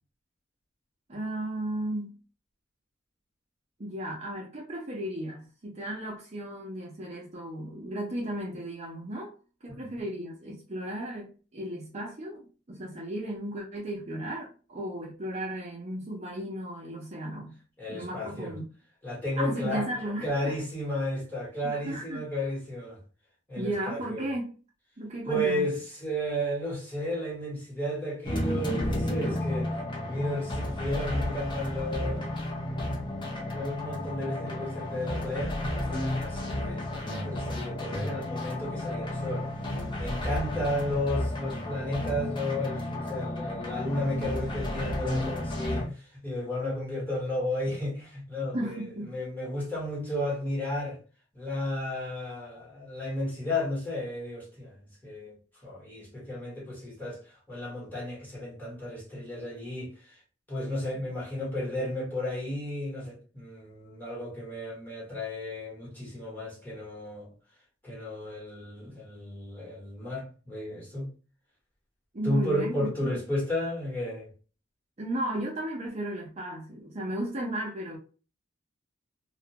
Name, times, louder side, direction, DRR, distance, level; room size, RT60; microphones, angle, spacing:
voice 1, 1.1-2.2 3.8-9.3 9.6-17.5 17.9-18.6 19.4-20.5 21.6-22.2 23.5-24.5 25.0-25.7 48.5-49.1 72.1-73.2 75.0-78.0, right 1 dB, 35° right, 0.5 m, -35 dB
voice 2, 17.8-18.5 19.0-19.9 20.2-23.0 23.5-24.3 25.3-29.7 30.0-32.9 33.4-39.5 39.9-48.8 49.1-51.0 51.3-54.8 55.0-55.4 55.6-57.2 57.5-59.9 60.5-67.3 67.8-71.1 72.2-74.3, left 1 dB, 10° left, 1.1 m, -33 dB
sound 1, 28.2-45.9, left 1 dB, 25° left, 0.5 m, -32 dB
2.4 x 2.1 x 2.8 m
head